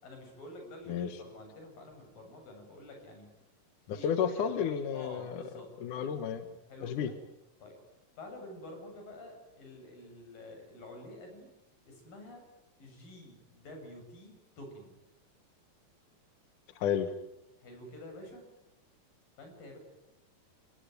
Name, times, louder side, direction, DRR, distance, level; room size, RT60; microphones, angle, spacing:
voice 1, 0.0-3.3 3.9-4.6 4.9-5.7 6.7-7.2 7.6-7.8 8.2-11.5 11.8-12.4 12.8-15.0 17.6-18.5 19.4-19.8, left 1 dB, 90° left, 3 dB, 9.3 m, -48 dB
voice 2, 0.9-1.2 3.9-5.4 5.8-6.5 6.8-7.1 16.8-17.1, left 8 dB, 70° left, 9 dB, 2.8 m, -32 dB
29.5 x 19.0 x 9.4 m, 0.88 s
omnidirectional pair, 3.9 m